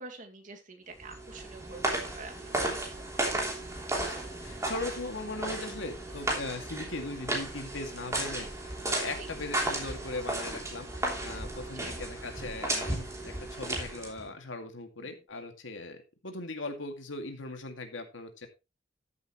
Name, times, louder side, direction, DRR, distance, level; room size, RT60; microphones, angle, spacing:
voice 1, 0.0-3.1 9.2-9.3 11.7-12.0 15.0-15.2, right 3 dB, 40° right, 3 dB, 2.3 m, -47 dB
sound 1, 1.0-14.3, right 1 dB, 15° right, 3.2 m, -34 dB
voice 2, 4.4-10.9 11.2-18.5, left 2 dB, 80° left, 5 dB, 2.2 m, -39 dB
14.0 x 8.1 x 3.1 m, 0.26 s
head